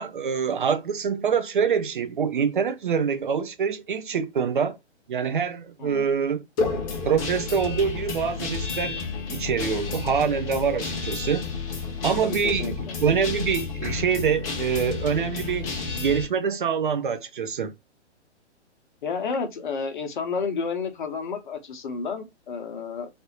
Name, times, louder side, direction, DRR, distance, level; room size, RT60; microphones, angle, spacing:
voice 1, 0.0-4.8 5.1-6.4 7.0-9.0 9.3-11.4 12.0-17.7, right 6 dB, 45° right, 0.5 m, -25 dB
voice 2, 5.8-6.1 12.2-12.9 19.0-23.1, left 5 dB, 45° left, 0.8 m, -31 dB
Guitar, 6.6-16.3, left 4 dB, 15° left, 0.6 m, -31 dB
3.4 x 2.6 x 2.7 m
figure-of-eight pair, 125°, 35 cm